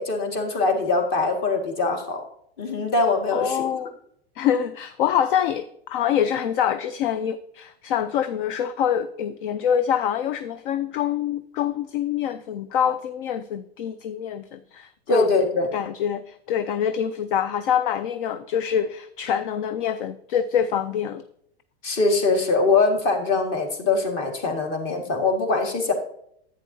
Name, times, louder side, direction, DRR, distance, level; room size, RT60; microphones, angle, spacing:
voice 1, 0.0-2.2 2.6-3.6 15.1-15.7 21.8-25.9, left 3 dB, 35° left, 4 dB, 1.9 m, -22 dB
voice 2, 3.3-3.9 4.4-15.3 15.7-21.2, left 9 dB, 55° left, 12 dB, 0.5 m, -25 dB
10.5 x 8.6 x 2.7 m, 0.70 s
hypercardioid pair, 145°, 32 cm